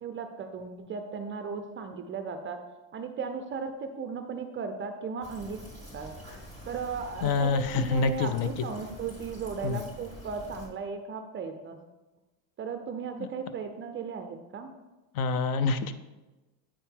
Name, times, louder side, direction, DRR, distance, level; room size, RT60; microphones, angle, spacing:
voice 1, 0.0-2.6 2.9-5.6 5.9-6.2 6.7-11.8 12.6-14.7, right 5 dB, 25° right, 7 dB, 0.4 m, -36 dB
Fill (with liquid), 5.2-10.7, equal, 15° left, 2.4 m, -46 dB
voice 2, 7.2-8.5 9.6-9.8 15.1-15.9, left 4 dB, 45° left, 11 dB, 0.6 m, -26 dB
8.6 x 4.4 x 3.5 m, 1.1 s
supercardioid pair, 105°, 49 cm